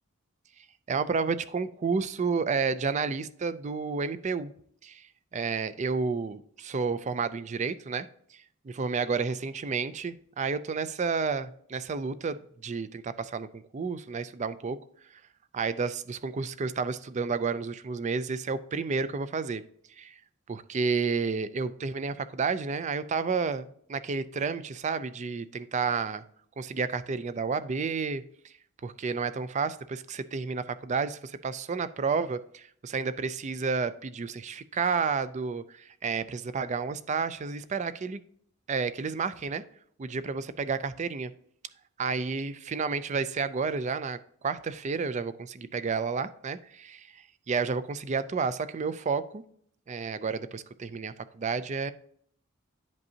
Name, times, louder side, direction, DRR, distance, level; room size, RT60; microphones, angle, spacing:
voice 1, 0.9-4.5 4.8-5.1 5.3-8.1 8.6-14.8 15.5-19.6 20.0-20.1 20.5-26.2 26.6-28.5 28.8-38.2 38.7-39.6 40.0-41.3 42.0-44.2 44.4-49.4 49.9-51.9, right 5 dB, 35° right, 14 dB, 0.4 m, -31 dB
10.5 x 5.3 x 2.8 m, 0.64 s
head